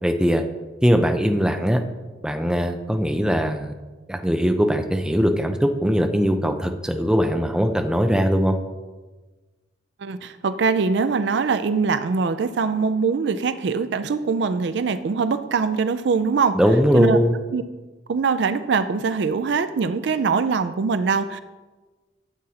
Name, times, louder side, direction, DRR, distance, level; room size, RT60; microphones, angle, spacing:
voice 1, 0.0-0.4 0.8-1.8 2.2-3.7 4.1-8.6 16.5-17.4, equal, 5° right, 5 dB, 0.4 m, -20 dB
voice 2, 10.0-16.6 16.9-17.2 17.5-17.6 18.1-21.4, right 5 dB, 65° right, 12 dB, 0.4 m, -22 dB
12.5 x 7.8 x 2.8 m, 1.3 s
head